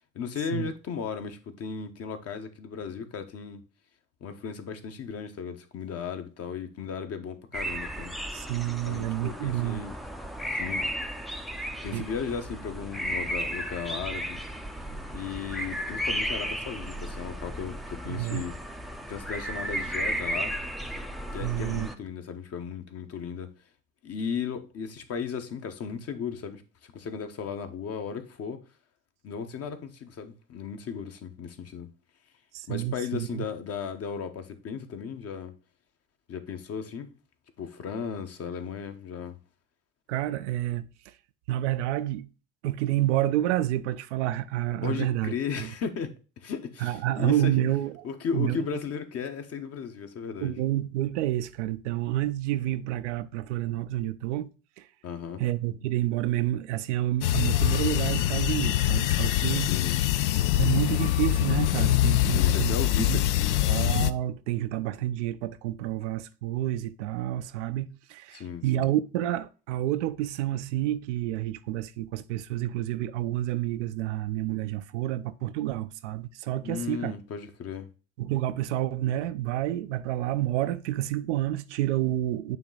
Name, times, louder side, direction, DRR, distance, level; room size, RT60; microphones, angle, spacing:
voice 1, 0.1-3.6 4.2-8.1 8.8-10.0 10.5-10.9 11.8-14.4 15.1-18.6 19.1-20.5 21.3-23.5 24.0-28.6 29.2-31.9 32.7-35.5 36.3-37.1 37.6-39.4 44.8-47.5 48.0-50.6 55.0-55.4 59.6-60.0 62.2-63.8 68.3-68.9 76.6-77.9, left 6 dB, 40° left, 1.0 m, -35 dB
sound 1, 7.5-21.9, equal, ahead, 0.6 m, -34 dB
voice 2, 8.3-9.8 11.9-12.1 18.1-18.4 21.4-21.9 32.5-33.5 40.1-40.9 41.5-42.3 42.6-45.3 45.6-45.7 46.8-48.0 48.3-48.6 50.4-54.5 54.8-54.9 55.4-59.8 60.6-62.8 63.1-63.2 63.7-77.1 78.2-82.6, right 14 dB, 65° right, 0.6 m, -29 dB
sound 2, 57.2-64.1, left 13 dB, 65° left, 0.5 m, -24 dB
9.1 x 3.1 x 3.8 m
figure-of-eight pair, 55°, 38 cm